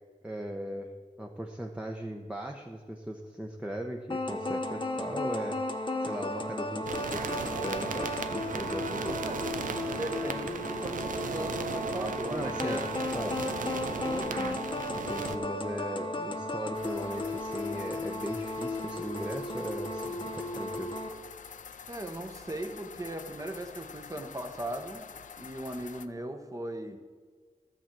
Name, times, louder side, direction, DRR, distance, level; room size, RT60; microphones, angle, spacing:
voice 1, 0.2-0.9 1.2-9.2 12.3-12.9 13.1-13.4 14.9-20.9, right 1 dB, 10° right, 1 dB, 0.7 m, -38 dB
sound 1, 4.1-21.1, left 2 dB, 35° left, 0.8 m, -35 dB
sound 2, 6.9-15.4, right 5 dB, 80° right, 0.6 m, -36 dB
voice 2, 9.2-9.6 9.9-14.7 21.8-25.0 25.4-27.0, right 1 dB, 25° right, 5 dB, 1.0 m, -39 dB
sound 3, 16.7-26.1, left 7 dB, 70° left, 0.4 m, -47 dB
12.5 x 4.5 x 7.4 m, 1.5 s
wide cardioid pair, 70°, 14 cm